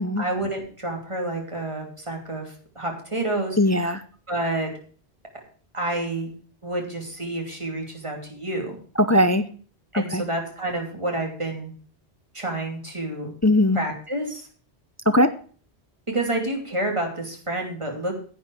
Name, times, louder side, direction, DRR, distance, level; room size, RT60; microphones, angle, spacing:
voice 1, 0.2-3.6 4.3-4.7 5.7-6.4 6.6-8.8 9.9-11.7 12.3-13.3 13.7-14.4 16.1-18.1, right 2 dB, 25° right, 1 dB, 2.9 m, -29 dB
voice 2, 3.6-4.0 9.0-9.5 9.9-10.2 13.4-13.8 15.1-15.3, left 1 dB, 20° left, 11 dB, 0.4 m, -19 dB
11.0 x 8.6 x 4.7 m, 0.42 s
omnidirectional pair, 1.1 m